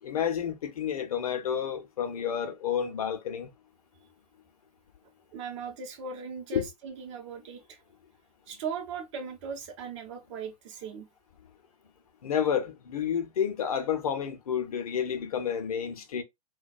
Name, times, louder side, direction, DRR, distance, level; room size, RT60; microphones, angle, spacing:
voice 1, 0.0-3.5 6.5-6.6 12.2-16.2, left 8 dB, 65° left, 0.6 m, -30 dB
voice 2, 5.3-7.8 8.5-11.1, right 5 dB, 50° right, 0.8 m, -38 dB
2.2 x 2.2 x 2.5 m
figure-of-eight pair, 95°, 20 cm